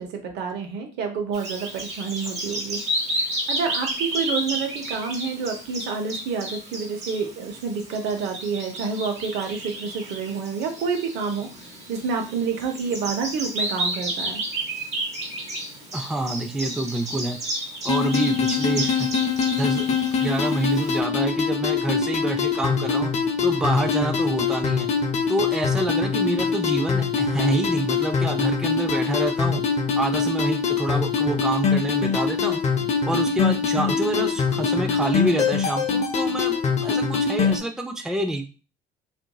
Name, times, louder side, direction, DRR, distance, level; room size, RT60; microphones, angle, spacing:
voice 1, 0.0-2.8 3.2-11.5 11.9-14.4, right 5 dB, 80° right, 4 dB, 0.8 m, -28 dB
Bird vocalization bird call bird song, 1.3-21.0, right 1 dB, 40° right, 1.1 m, -32 dB
voice 2, 15.9-17.4 17.8-19.1 19.5-23.1 23.4-24.9 25.3-29.6 29.9-32.6 33.0-36.5 36.8-38.5, right 1 dB, 5° right, 4 dB, 0.4 m, -27 dB
sound 1, 17.9-37.6, left 5 dB, 40° left, 0.6 m, -23 dB
2.8 x 2.5 x 2.2 m, 0.32 s
cardioid pair, 110°, 17 cm